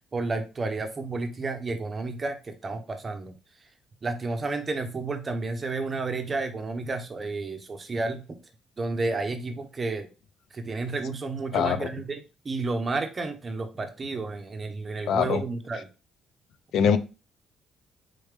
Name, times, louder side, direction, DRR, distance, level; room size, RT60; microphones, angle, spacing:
voice 1, 0.1-3.3 4.0-8.4 8.8-10.1 10.5-15.9, right 3 dB, 25° right, 0.7 m, -31 dB
voice 2, 11.5-11.9 15.1-15.4 16.7-17.0, left 7 dB, 70° left, 0.4 m, -22 dB
4.1 x 3.4 x 3.2 m
cardioid pair, 130°, 0 cm